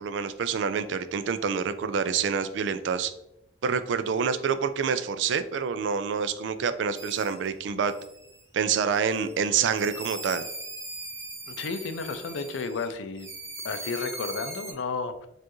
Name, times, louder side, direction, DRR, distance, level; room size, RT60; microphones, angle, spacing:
voice 1, 0.0-3.1 3.6-7.9 8.5-10.4, right 6 dB, 75° right, 12 dB, 0.3 m, -27 dB
sound 1, 7.0-7.5 7.9-8.4 8.9-12.9 13.2-14.7, right 2 dB, 15° right, 0.5 m, -40 dB
voice 2, 11.5-13.3 13.6-15.3, left 4 dB, 85° left, 10 dB, 0.4 m, -32 dB
4.5 x 2.4 x 3.0 m, 0.81 s
head